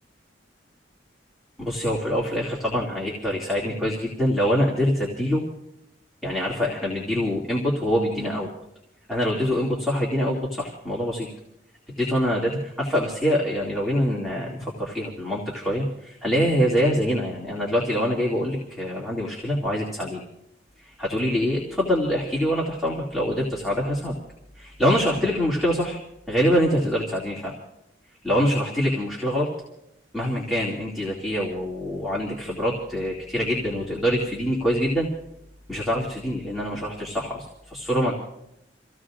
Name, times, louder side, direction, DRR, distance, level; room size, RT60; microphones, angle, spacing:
voice 1, 1.6-5.4 6.2-8.5 9.1-11.3 12.0-20.2 20.8-24.1 24.5-26.0 26.3-27.5 28.2-29.5 30.1-35.1 35.7-38.1, equal, ahead, -5 dB, 2.5 m, -25 dB
29.5 x 16.0 x 2.5 m, 0.84 s
head